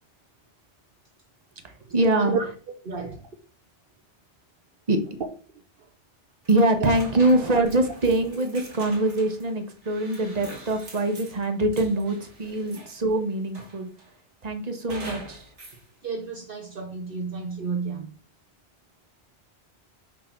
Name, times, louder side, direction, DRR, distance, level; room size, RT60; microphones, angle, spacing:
voice 1, 1.6-2.3 3.0-3.1 4.9-5.0 6.5-13.9 14.4-15.5, right 2 dB, 35° right, 1.2 m, -24 dB
voice 2, 2.8-3.3 5.8-5.9 6.8-6.9 7.5-7.6 12.6-12.7 16.0-18.1, right 4 dB, 55° right, 1.0 m, -31 dB
sound 1, 6.4-13.1 13.5-14.1 14.9-15.8, right 1 dB, 85° right, 2.6 m, -44 dB
7.4 x 3.8 x 6.0 m
omnidirectional pair, 1.2 m